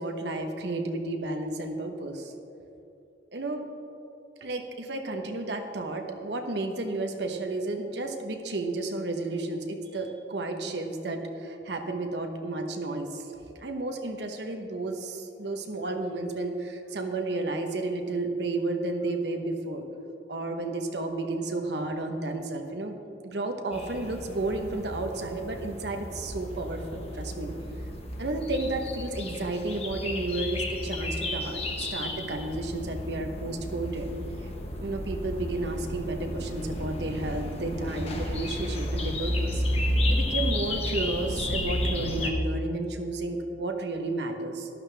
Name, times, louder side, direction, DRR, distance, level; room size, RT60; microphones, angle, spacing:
voice 1, 0.0-2.3 3.3-3.7 4.4-13.3 13.6-19.8 20.3-23.0 23.2-27.5 28.2-34.1 34.8-39.6 40.1-44.7, right 2 dB, 65° right, 4 dB, 1.0 m, -32 dB
sound 1, 23.7-42.3, left 1 dB, 35° left, 1.1 m, -32 dB
12.0 x 11.5 x 3.4 m, 2.8 s
head